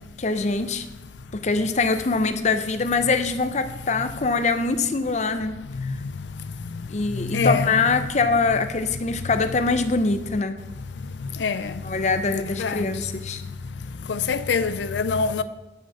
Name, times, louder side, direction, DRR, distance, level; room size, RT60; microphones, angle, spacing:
voice 1, 0.2-0.9 1.3-5.9 6.9-10.5 11.8-13.4, left 3 dB, 40° left, 0.6 m, -23 dB
voice 2, 5.7-7.7 11.0-12.0 12.6-12.9 13.4-13.6 13.8-15.4, left 4 dB, 85° left, 0.5 m, -27 dB
8.7 x 6.2 x 5.6 m
head